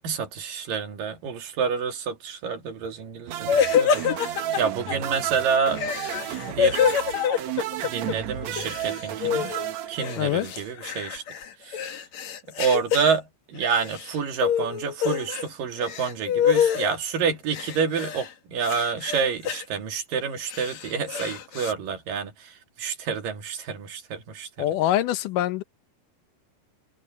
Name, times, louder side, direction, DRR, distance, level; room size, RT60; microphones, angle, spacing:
voice 1, 0.0-4.0 4.6-5.9 6.5-6.8 7.6-9.5 9.9-11.2 11.6-12.0 12.6-24.7, right 6 dB, 90° right, 4.0 m, -28 dB
sound 1, 3.3-10.6, right 12 dB, 65° right, 2.2 m, -32 dB
sound 2, 3.5-4.9 5.7-8.1 8.4-9.7 10.0-13.1 13.6-14.1 14.4-15.5 15.8-16.9 17.5-18.3 18.6-19.6 20.3-21.7, left 8 dB, 60° left, 2.7 m, -26 dB
voice 2, 10.2-10.5 24.6-25.6, left 12 dB, 80° left, 2.5 m, -24 dB
omnidirectional pair, 3.8 m